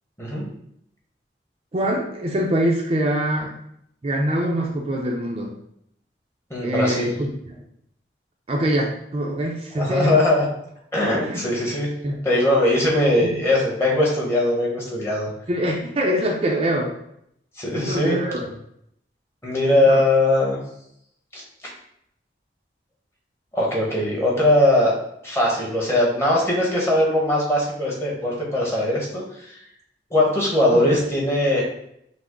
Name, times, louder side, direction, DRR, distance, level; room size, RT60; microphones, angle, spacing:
voice 1, 1.7-3.5 4.0-5.5 6.6-7.6 8.5-10.2 11.2-11.4 12.0-12.2 13.2-13.4 15.5-16.9 17.7-18.5 19.9-20.0 30.7-31.0, right 1 dB, 35° right, -1 dB, 0.5 m, -24 dB
voice 2, 6.5-7.2 9.8-10.5 10.9-11.9 12.2-15.3 17.6-18.2 19.4-20.6 21.3-21.4 23.5-24.9 25.2-29.6 30.1-31.6, left 1 dB, 15° left, -4 dB, 1.1 m, -20 dB
5.7 x 2.0 x 3.8 m, 0.74 s
head